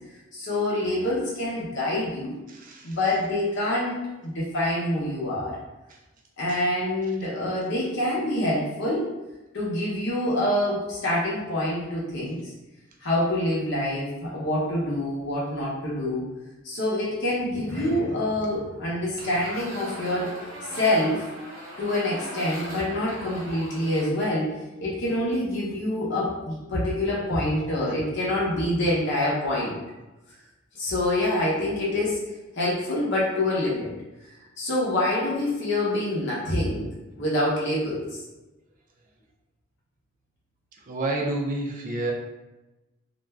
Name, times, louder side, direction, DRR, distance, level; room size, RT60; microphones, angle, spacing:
voice 1, 0.3-2.3 2.8-3.9 4.2-5.6 6.4-9.1 9.5-12.5 13.0-16.2 16.6-20.4 20.7-21.2 21.8-29.8 30.7-32.2 32.6-33.9 34.6-36.9 37.2-38.2, left 1 dB, 65° left, -6 dB, 0.7 m, -26 dB
voice 2, 2.5-3.0 40.9-42.1, right 2 dB, 40° right, 1 dB, 0.4 m, -29 dB
sound 1, 17.4-22.0 22.3-22.5 23.0-23.1, equal, 10° left, 0.7 m, -44 dB
sound 2, 19.2-24.1, right 1 dB, 80° right, 0.9 m, -39 dB
2.5 x 2.2 x 3.3 m, 1.0 s
head